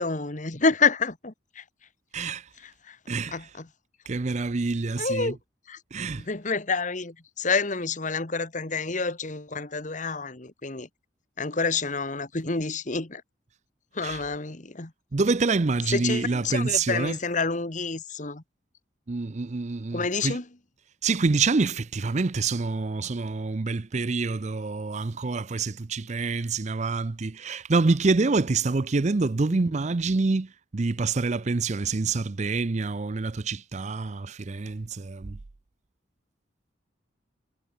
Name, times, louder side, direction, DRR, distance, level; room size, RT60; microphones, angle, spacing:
voice 1, 0.0-1.6 2.6-3.0 3.3-3.7 5.0-5.4 5.7-5.8 6.1-10.9 11.4-13.2 13.9-14.9 15.9-18.4 19.9-20.4 29.5-29.6, left 4 dB, 40° left, 1.6 m, -28 dB
voice 2, 2.1-2.5 3.1-3.4 4.1-5.3 5.9-6.3 14.0-14.2 15.1-17.2 19.1-20.4 21.0-35.4, right 3 dB, 40° right, 0.5 m, -26 dB
head